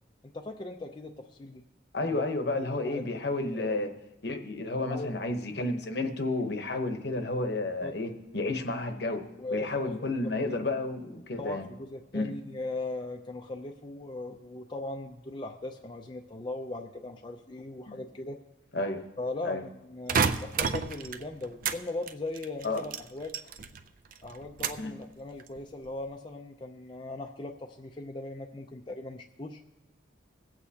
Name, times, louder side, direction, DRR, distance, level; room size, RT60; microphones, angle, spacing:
voice 1, 0.2-1.6 2.1-2.2 2.5-3.0 3.3-3.8 4.9-5.2 7.8-7.9 9.4-9.9 10.6-10.7 11.4-18.4 19.2-23.3 24.2-29.6, left 2 dB, 25° left, 2 dB, 0.4 m, -39 dB
voice 2, 1.9-3.9 4.2-9.2 9.5-11.7 12.1-12.3 17.9-18.0 18.7-19.0 19.4-19.6 22.6-22.8 24.8-24.9, left 2 dB, 55° left, 6 dB, 0.9 m, -31 dB
sound 1, 20.1-21.8 22.1-23.8 24.1-24.9 25.4-25.9, right 6 dB, 45° right, 0.4 m, -30 dB
22.0 x 8.3 x 2.8 m, 0.98 s
head